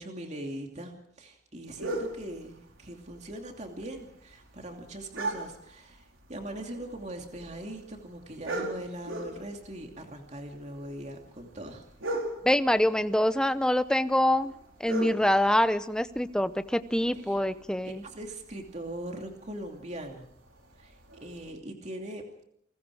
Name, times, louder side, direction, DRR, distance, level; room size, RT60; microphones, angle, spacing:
voice 1, 0.0-11.8 17.3-17.4 17.8-20.2 20.8-22.4, right 1 dB, 35° right, 3 dB, 2.7 m, -41 dB
sound 1, 1.7-21.5, right 1 dB, 85° right, 4.6 m, -41 dB
voice 2, 12.4-14.5 14.8-18.0, left 1 dB, 5° left, 12 dB, 0.7 m, -25 dB
29.0 x 21.0 x 4.9 m, 0.71 s
head